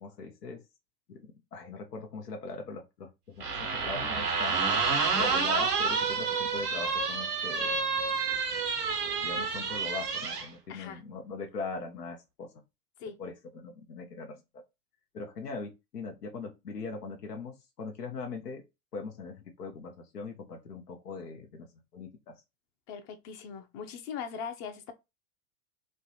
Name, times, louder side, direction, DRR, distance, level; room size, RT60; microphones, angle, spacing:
voice 1, 0.0-0.6 1.1-4.7 5.1-7.8 9.2-12.5 13.2-14.4 15.1-18.6 18.9-21.7 21.9-22.4, left 4 dB, 90° left, 0.7 m, -41 dB
sound 1, 3.4-10.5, right 5 dB, 85° right, 1.0 m, -29 dB
voice 2, 10.7-11.0 13.0-13.2 22.9-24.9, left 7 dB, 40° left, 0.6 m, -40 dB
3.2 x 2.0 x 2.7 m
hypercardioid pair, 95°, 46 cm